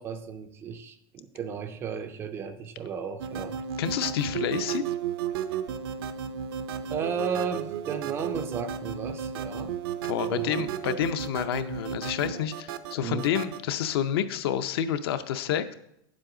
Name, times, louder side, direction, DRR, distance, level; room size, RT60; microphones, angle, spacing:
voice 1, 0.0-3.6 6.9-9.7 10.3-10.7 13.0-13.3, right 6 dB, 20° right, 9 dB, 0.3 m, -34 dB
sound 1, 3.2-13.6, right 8 dB, 70° right, 0.5 m, -34 dB
voice 2, 3.8-4.8 10.0-15.7, left 9 dB, 70° left, 11 dB, 0.6 m, -29 dB
8.6 x 7.4 x 3.8 m, 0.79 s
supercardioid pair, 165°, 13 cm